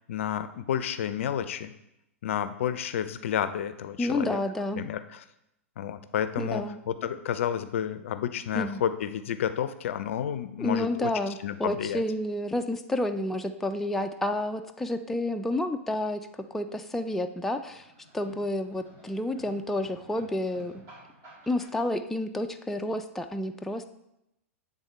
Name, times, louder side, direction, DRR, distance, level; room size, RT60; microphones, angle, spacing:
voice 1, 0.1-1.7 2.2-4.4 4.7-5.2 5.8-11.1 11.4-12.0, left 9 dB, 65° left, 12 dB, 0.4 m, -30 dB
voice 2, 4.0-4.8 6.4-6.8 8.5-8.8 10.6-17.9 18.1-20.8 21.5-23.8, left 1 dB, 5° left, 5 dB, 0.4 m, -30 dB
sound 1, 16.4-21.7, equal, 40° right, 2.6 m, -54 dB
8.0 x 3.6 x 4.2 m, 0.84 s
hypercardioid pair, 110°, 7 cm